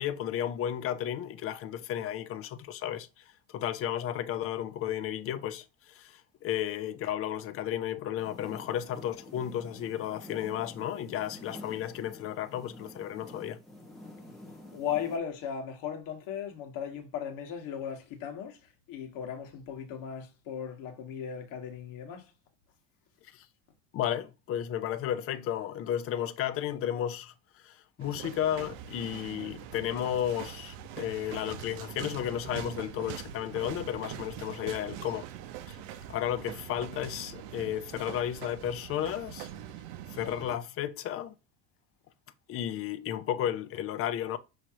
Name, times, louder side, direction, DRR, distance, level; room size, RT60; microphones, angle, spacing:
voice 1, 0.0-3.1 3.5-13.6 23.3-23.5 23.9-27.3 27.6-35.2 35.7-35.8 36.1-39.5 40.1-41.3 42.5-44.4, left 11 dB, 40° left, 0.5 m, -33 dB
sound 1, 8.2-15.2, left 1 dB, ahead, 1.2 m, -49 dB
voice 2, 14.7-22.3, left 8 dB, 60° left, 1.5 m, -37 dB
sound 2, 28.0-40.6, right 10 dB, 75° right, 0.7 m, -43 dB
6.1 x 3.1 x 2.8 m
cardioid pair, 150°, 37 cm